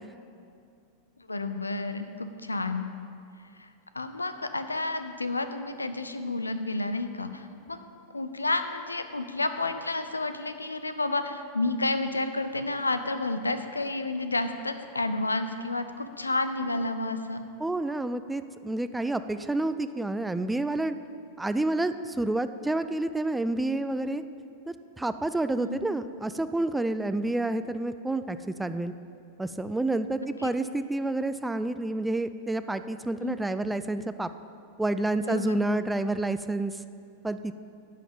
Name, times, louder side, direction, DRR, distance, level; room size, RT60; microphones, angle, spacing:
voice 1, 1.3-2.9 3.6-3.7 3.9-7.8 8.1-17.4 25.6-25.9 30.4-30.5 33.2-33.4 35.2-35.6, left 2 dB, 80° left, 10 dB, 0.5 m, -30 dB
voice 2, 17.6-21.0 21.4-24.2 24.7-28.9 29.4-34.3 34.8-36.8 37.2-37.5, right 2 dB, 5° right, 11 dB, 0.3 m, -29 dB
10.5 x 5.8 x 6.9 m, 2.5 s
figure-of-eight pair, 90°, 0 cm